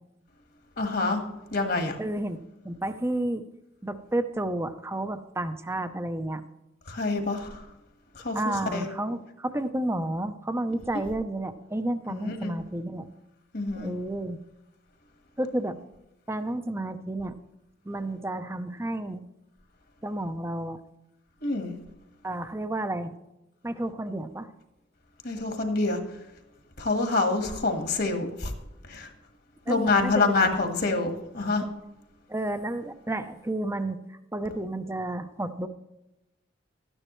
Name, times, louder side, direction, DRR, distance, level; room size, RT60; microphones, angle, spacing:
voice 1, 0.8-1.2 1.5-2.0 6.9-7.6 8.1-8.9 12.1-12.5 13.5-13.9 21.4-21.7 25.2-26.0 26.8-28.5 28.9-29.1 29.7-31.6, left 3 dB, 55° left, 5 dB, 1.5 m, -26 dB
voice 2, 2.0-2.4 2.6-3.5 3.8-6.4 8.3-13.1 13.7-14.4 15.4-15.8 16.3-17.4 17.8-19.2 20.0-20.8 22.2-23.1 23.6-24.5 29.7-30.5 32.3-35.7, right 1 dB, 15° right, 10 dB, 0.6 m, -31 dB
13.0 x 9.9 x 3.1 m, 0.94 s
head